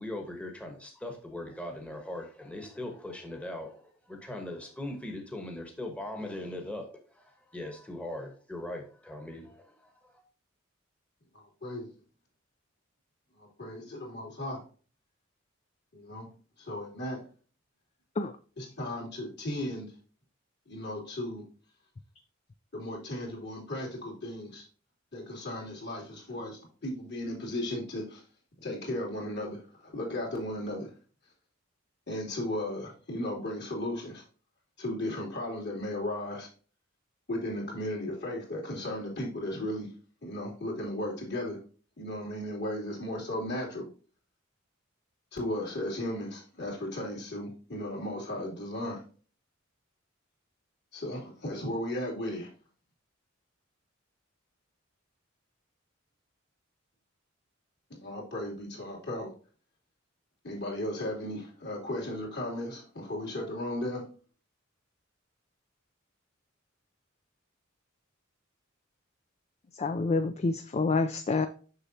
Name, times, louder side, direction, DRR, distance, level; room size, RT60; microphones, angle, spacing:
voice 1, 0.0-10.2, left 1 dB, 5° left, 2 dB, 1.1 m, -40 dB
voice 2, 11.3-11.9 13.4-14.6 15.9-16.3 16.6-17.2 18.6-19.9 20.7-21.4 22.7-24.6 25.1-28.2 28.6-30.9 32.1-34.2 34.8-36.5 37.3-39.9 40.2-41.6 42.0-43.8 45.3-49.0 50.9-52.5 58.0-59.3 60.4-64.0, left 1 dB, 55° left, -1 dB, 2.7 m, -35 dB
voice 3, 69.7-71.5, left 3 dB, 35° left, 9 dB, 0.4 m, -28 dB
6.6 x 6.1 x 2.7 m, 0.39 s
head